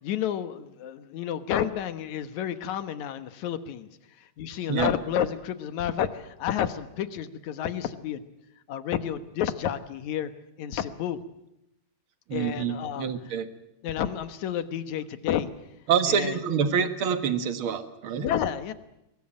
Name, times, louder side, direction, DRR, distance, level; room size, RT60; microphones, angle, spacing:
voice 1, 0.0-3.9 4.4-8.2 8.7-10.3 10.6-11.2 12.3-13.1 13.8-15.5 16.1-16.4 18.2-18.7, left 9 dB, 65° left, 11 dB, 2.4 m, -30 dB
voice 2, 12.3-13.5 15.9-18.3, right 7 dB, 50° right, 9 dB, 1.9 m, -26 dB
23.5 x 19.5 x 8.8 m, 0.86 s
omnidirectional pair, 3.8 m